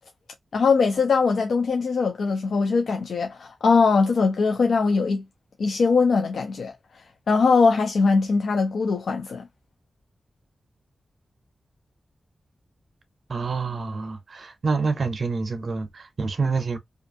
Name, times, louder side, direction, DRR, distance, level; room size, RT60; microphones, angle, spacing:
voice 1, 0.5-5.2 5.6-9.5, left 4 dB, 80° left, 0.3 m, -21 dB
voice 2, 13.3-16.8, right 4 dB, 50° right, 0.5 m, -27 dB
2.6 x 2.4 x 2.4 m
wide cardioid pair, 155°, 0 cm